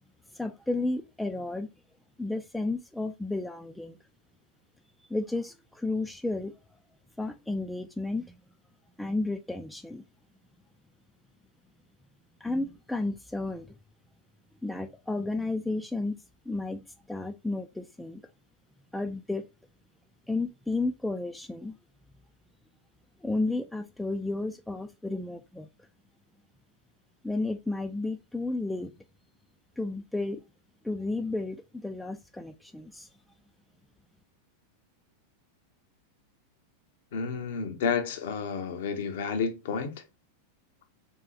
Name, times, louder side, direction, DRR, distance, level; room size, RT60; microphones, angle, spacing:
voice 1, 0.3-1.7 2.2-4.0 5.1-6.5 7.2-8.4 9.0-10.0 12.4-13.7 14.6-16.2 16.5-18.2 18.9-19.4 20.3-21.8 23.2-25.7 27.2-28.9 29.8-30.4 30.8-33.1, left 2 dB, 5° left, 0.3 m, -32 dB
voice 2, 37.1-39.9, left 6 dB, 55° left, 0.8 m, -30 dB
3.7 x 2.8 x 3.1 m
figure-of-eight pair, 90°, 0 cm